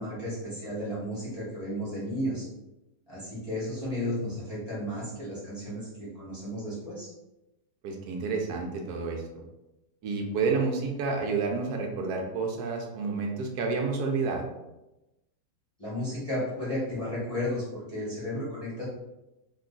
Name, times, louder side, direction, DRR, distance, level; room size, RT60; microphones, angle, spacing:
voice 1, 0.0-2.5 3.1-7.1 15.8-18.9, left 1 dB, 20° left, -9 dB, 0.8 m, -33 dB
voice 2, 7.8-9.4 10.0-14.4, right 4 dB, 75° right, 2 dB, 1.1 m, -30 dB
3.0 x 2.3 x 3.8 m, 0.97 s
omnidirectional pair, 1.8 m